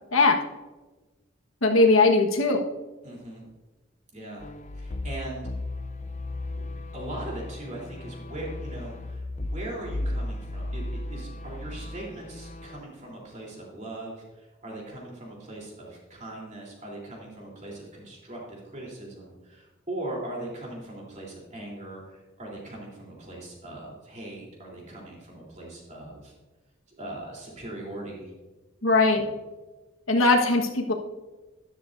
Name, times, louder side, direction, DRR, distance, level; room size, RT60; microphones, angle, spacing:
voice 1, 1.6-2.6 28.8-29.2 30.1-30.9, left 3 dB, 90° left, 3 dB, 1.4 m, -20 dB
voice 2, 3.0-3.5 4.1-4.5 4.7-5.5 6.6-6.7 6.9-26.3 26.9-28.3 29.1-29.3, right 1 dB, 35° right, -3 dB, 3.4 m, -40 dB
sound 1, 4.4-12.8, left 2 dB, 35° left, 0.5 m, -35 dB
13.0 x 11.0 x 2.6 m, 1.2 s
head